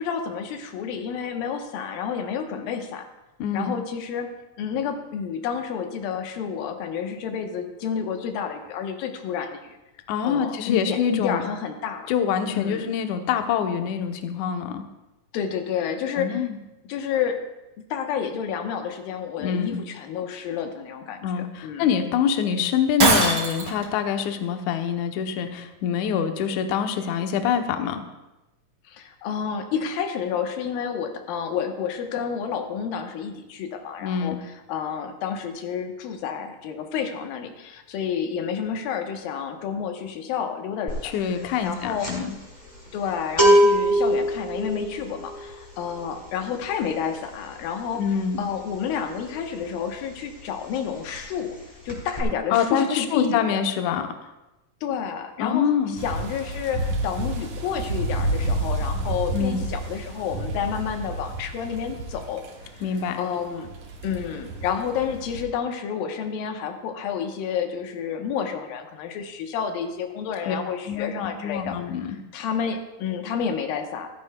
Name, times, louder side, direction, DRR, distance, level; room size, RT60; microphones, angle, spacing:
voice 1, 0.0-3.1 3.5-4.3 4.6-9.8 10.2-12.1 12.5-12.9 15.3-16.5 16.8-17.4 17.9-21.9 28.9-41.1 41.6-42.1 42.9-48.0 48.4-51.6 51.8-53.6 54.8-62.4 62.7-62.8 63.2-63.7 64.0-71.8 72.0-74.1, left 7 dB, 90° left, 4 dB, 2.8 m, -30 dB
voice 2, 3.4-3.8 10.1-11.4 12.1-14.8 16.2-16.6 19.4-19.8 21.2-28.0 34.0-34.4 41.0-42.3 48.0-48.4 52.5-54.0 55.4-56.0 59.3-59.7 62.8-63.2 70.5-70.6 70.9-72.2, left 7 dB, 70° left, 6 dB, 1.9 m, -25 dB
Shatter, 23.0-23.8, right 3 dB, 35° right, 2.2 m, -20 dB
sound 1, 40.9-41.1 41.4-50.0 50.3-50.5 50.7-51.6 51.9-52.2, equal, 10° left, 2.8 m, -23 dB
sound 2, 56.0-65.4, right 2 dB, 65° right, 2.9 m, -30 dB
15.0 x 14.0 x 2.2 m, 1.0 s
omnidirectional pair, 4.0 m